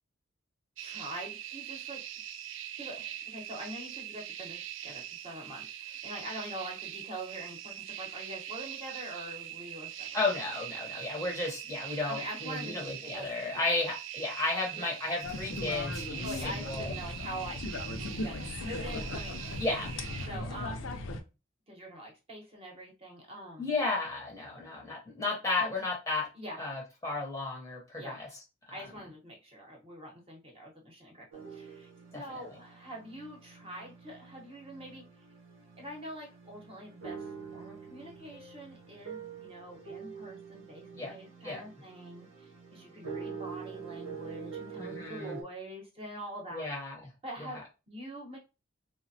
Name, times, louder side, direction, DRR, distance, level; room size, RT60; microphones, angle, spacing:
voice 1, 0.8-2.0 2.8-10.1 12.1-13.6 14.7-14.9 16.2-17.6 18.0-19.5 20.2-20.8 21.7-23.7 25.6-25.7 26.3-26.8 28.0-28.3 28.7-35.0 35.8-46.7 47.2-48.4, right 1 dB, 30° right, 0 dB, 0.8 m, -44 dB
sound 1, 0.8-20.3, right 11 dB, 65° right, 0.3 m, -42 dB
voice 2, 10.1-16.9 19.6-19.9 23.6-26.3 26.6-28.3 28.7-28.8 32.1-32.4 40.9-41.1 41.4-41.6 44.8-45.4 46.5-47.1, left 3 dB, 15° left, -1 dB, 0.6 m, -33 dB
sound 2, 15.2-21.2, left 2 dB, 75° left, 0.5 m, -38 dB
sound 3, 31.3-45.4, right 6 dB, 85° right, 0.8 m, -46 dB
3.3 x 2.1 x 2.6 m, 0.28 s
head